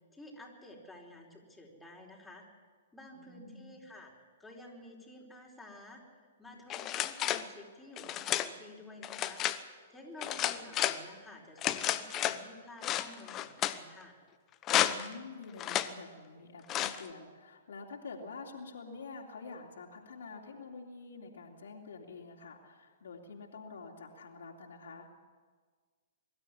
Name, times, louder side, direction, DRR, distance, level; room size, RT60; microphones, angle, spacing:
voice 1, 0.0-2.5 2.9-4.1 4.4-9.4 9.9-14.2, left 1 dB, 5° left, -3 dB, 4.6 m, -52 dB
voice 2, 3.1-3.8 10.2-10.4 14.9-25.1, left 4 dB, 75° left, 0 dB, 3.1 m, -47 dB
sound 1, 6.7-7.5 8.0-8.5 9.0-9.6 10.2-11.0 11.6-12.4 12.8-13.8 14.6-15.1 15.6-15.9 16.7-17.0, left 12 dB, 30° left, 1.0 m, -32 dB
23.5 x 13.0 x 10.0 m, 1.6 s
hypercardioid pair, 120°, 0 cm